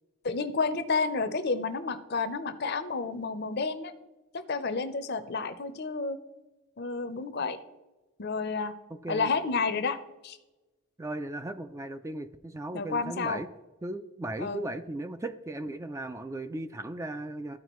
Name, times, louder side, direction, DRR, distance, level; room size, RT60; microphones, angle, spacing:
voice 1, 0.2-3.9 4.5-6.2 6.8-7.6 8.2-8.7 9.1-10.0 10.2-10.4 12.7-13.4 14.4-14.6, left 4 dB, 50° left, 11 dB, 0.6 m, -30 dB
voice 2, 11.0-13.5 13.8-17.6, right 1 dB, 15° right, 9 dB, 0.3 m, -36 dB
14.0 x 4.7 x 3.0 m, 1.1 s
head